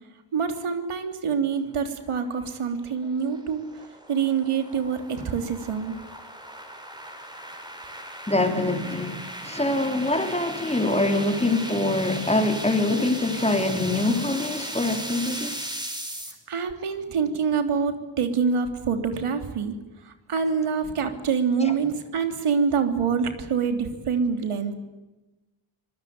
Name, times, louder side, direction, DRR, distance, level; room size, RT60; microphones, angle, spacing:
voice 1, 0.3-5.9 16.5-19.7 20.0-24.7, right 6 dB, 80° right, 3.3 m, -26 dB
sound 1, 2.4-16.3, right 1 dB, 10° right, 5.0 m, -37 dB
voice 2, 8.3-15.7, left 2 dB, 10° left, 3.5 m, -24 dB
26.0 x 21.5 x 9.6 m
wide cardioid pair, 120°, 50 cm